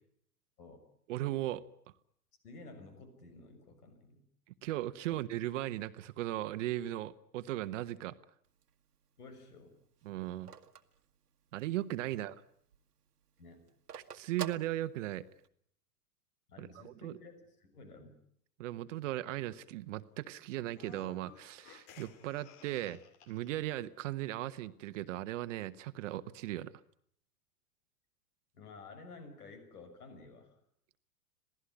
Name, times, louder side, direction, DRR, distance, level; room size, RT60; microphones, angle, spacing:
voice 1, 1.1-1.6 4.6-8.1 10.0-10.5 11.5-12.4 13.9-15.2 16.6-17.2 18.6-23.0 23.3-26.7, right 14 dB, 50° right, 12 dB, 1.2 m, -37 dB
voice 2, 2.4-4.2 9.2-9.8 12.1-12.2 13.4-13.7 16.5-18.2 28.5-30.6, left 3 dB, 70° left, 9 dB, 6.4 m, -52 dB
Telephone, 8.4-11.9 12.3-12.4 12.6-15.5, right 7 dB, 80° right, 1.6 m, -47 dB
sound 1, 20.7-23.7, left 9 dB, 50° left, 2.2 m, -57 dB
27.0 x 18.0 x 9.9 m, 0.68 s
figure-of-eight pair, 105°, 47 cm